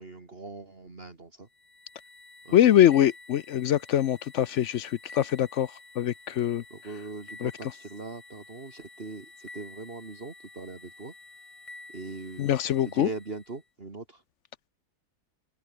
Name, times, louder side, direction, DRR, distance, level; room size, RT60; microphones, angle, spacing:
voice 1, 0.0-1.5 2.4-2.7 6.7-11.1 11.9-12.5 12.8-14.2, right 3 dB, 35° right, 2.8 m, -41 dB
sound 1, 1.5-13.6, left 2 dB, 20° left, 1.7 m, -50 dB
voice 2, 2.5-5.7 6.0-6.6 7.4-7.5 12.4-13.1, left 11 dB, 65° left, 0.8 m, -23 dB
omnidirectional pair, 1.7 m